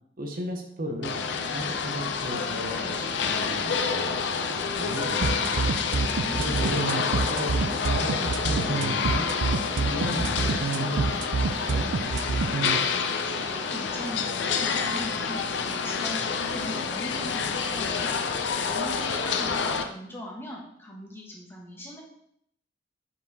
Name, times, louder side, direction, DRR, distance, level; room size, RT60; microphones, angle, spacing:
voice 1, 0.2-4.2 4.5-5.5 6.4-6.9 7.3-11.2 11.6-12.2, equal, 50° right, 3 dB, 0.8 m, -35 dB
sound 1, 1.0-19.8, left 5 dB, 70° left, 0.6 m, -28 dB
sound 2, 2.1-12.1, left 4 dB, 55° left, 1.5 m, -47 dB
sound 3, 5.2-12.8, right 4 dB, 85° right, 0.4 m, -27 dB
voice 2, 6.0-6.7 13.2-15.5 15.8-18.1 18.6-22.0, left 1 dB, 15° left, -2 dB, 1.2 m, -40 dB
5.6 x 4.7 x 4.0 m, 0.73 s
head